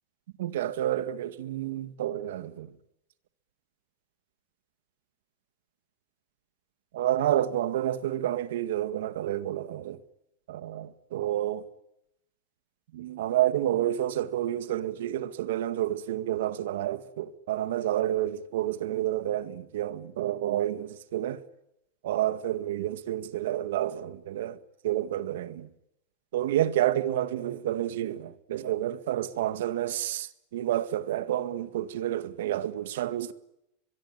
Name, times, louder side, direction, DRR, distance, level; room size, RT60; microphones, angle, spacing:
voice 1, 0.4-2.7 6.9-10.0 10.5-11.6 12.9-21.4 22.0-24.6 24.8-25.7 26.3-33.3, right 12 dB, 80° right, 1.8 m, -29 dB
23.5 x 22.5 x 9.1 m
supercardioid pair, 165°, 0 cm